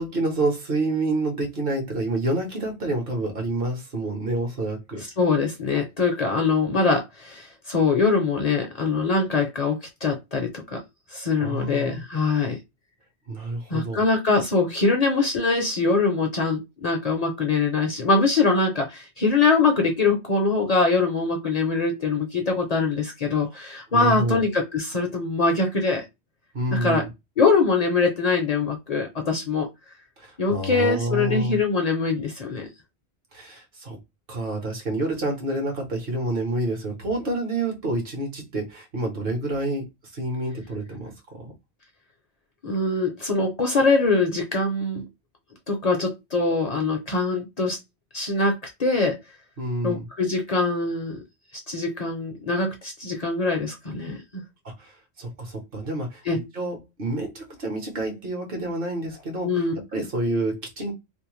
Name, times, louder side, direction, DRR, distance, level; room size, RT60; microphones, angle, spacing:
voice 1, 0.0-5.0 11.4-12.0 13.3-14.0 23.9-24.4 26.5-27.1 30.2-31.6 33.3-34.0 34.3-39.8 40.1-41.1 41.4-41.5 49.6-50.1 54.6-59.5 59.9-60.9, right 2 dB, 60° right, 1.1 m, -28 dB
voice 2, 5.2-10.8 11.1-12.6 13.7-26.1 26.7-27.0 27.4-29.7 30.4-32.7 42.6-45.1 45.7-47.8 48.1-49.2 49.8-51.2 51.7-54.4 56.3-56.4 59.4-59.7, left 3 dB, 45° left, 0.6 m, -23 dB
2.7 x 2.0 x 3.0 m
omnidirectional pair, 1.1 m